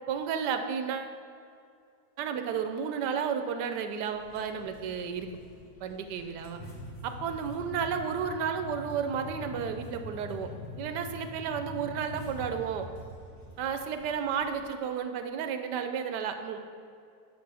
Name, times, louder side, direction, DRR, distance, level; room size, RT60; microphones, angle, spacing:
voice 1, 0.1-1.1 2.2-5.3 5.8-6.6 7.0-10.5 10.8-12.9 13.6-16.6, right 7 dB, 90° right, 8 dB, 1.2 m, -32 dB
sound 1, 4.1-14.6, left 1 dB, 70° left, 1.9 m, -44 dB
10.5 x 6.5 x 3.4 m, 2.4 s
omnidirectional pair, 1.7 m